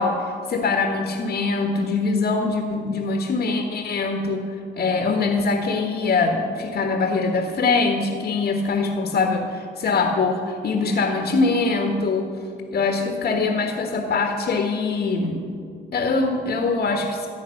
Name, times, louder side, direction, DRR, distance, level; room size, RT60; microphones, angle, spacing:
voice 1, 0.0-4.4 4.8-12.3 12.7-15.4 15.9-17.3, left 3 dB, 55° left, 3 dB, 1.6 m, -23 dB
14.5 x 9.0 x 6.6 m, 2.4 s
cardioid pair, 90°, 20 cm